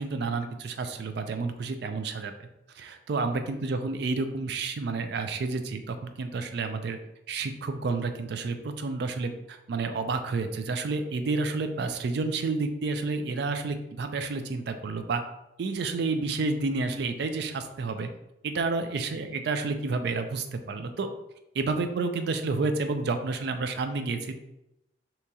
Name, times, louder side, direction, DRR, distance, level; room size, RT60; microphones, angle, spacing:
voice 1, 0.0-2.3 2.8-7.0 7.3-15.2 15.6-18.1 18.4-21.1 21.5-24.4, right 3 dB, 60° right, 8 dB, 0.4 m, -30 dB
2.8 x 2.8 x 3.5 m, 0.86 s
head